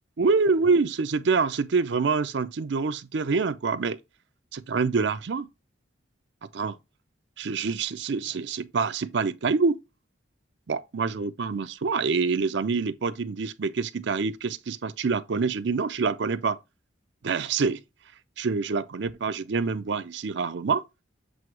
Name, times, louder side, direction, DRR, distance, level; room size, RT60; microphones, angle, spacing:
voice 1, 0.2-4.0 4.5-5.5 6.4-6.8 7.4-9.8 10.7-16.6 17.2-17.8 18.4-20.8, right 4 dB, 65° right, 0.5 m, -26 dB
7.7 x 2.8 x 4.6 m
head